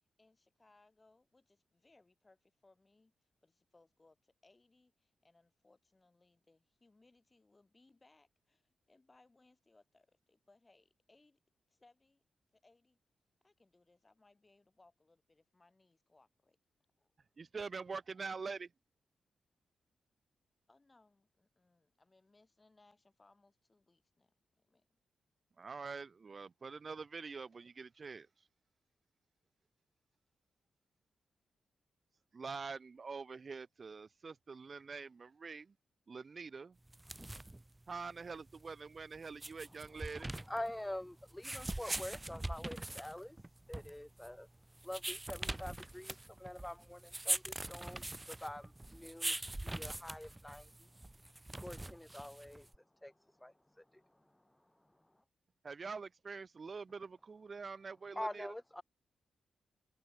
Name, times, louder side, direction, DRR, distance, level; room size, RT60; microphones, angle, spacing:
voice 1, 0.2-3.1 3.4-11.4 11.7-12.2 12.5-13.0 13.4-16.6 17.0-17.1 20.7-24.8, left 2 dB, 30° left, 5.4 m, -69 dB
voice 2, 17.4-18.7 25.6-28.5 32.3-35.7 36.1-36.8 37.9-40.3 55.6-58.5, right 4 dB, 50° right, 0.6 m, -45 dB
sound 1, 36.9-52.8, right 1 dB, 15° right, 1.1 m, -43 dB
voice 3, 40.5-43.4 43.7-44.5 44.8-50.9 51.5-52.7 53.0-53.1 53.4-54.0 58.2-58.8, left 1 dB, 10° left, 0.5 m, -46 dB
cardioid pair, 55°, 0 cm